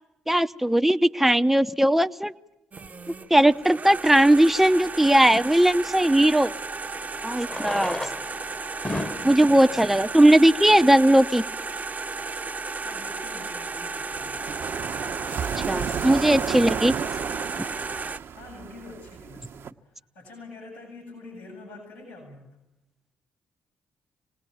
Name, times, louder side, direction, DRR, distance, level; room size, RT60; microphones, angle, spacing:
voice 1, 0.3-2.3 3.3-6.5 7.2-8.0 9.2-11.4 15.7-16.9, right 1 dB, 5° right, 9 dB, 0.7 m, -18 dB
sound 1, 2.7-18.2, right 4 dB, 35° right, 0.9 m, -34 dB
Fireworks, 3.8-3.9 6.2-6.3 7.3-11.1 11.9-12.0 12.2-12.3 12.5-12.6 13.1-13.3, left 1 dB, 20° left, 1.2 m, -35 dB
voice 2, 7.6-8.1 9.4-10.0 12.8-14.4 18.3-19.7 20.1-22.6, left 2 dB, 90° left, -3 dB, 7.6 m, -45 dB
sound 2, 14.1-19.7, right 7 dB, 60° right, 1.0 m, -32 dB
26.5 x 19.5 x 7.2 m, 0.91 s
hypercardioid pair, 45°, 5 cm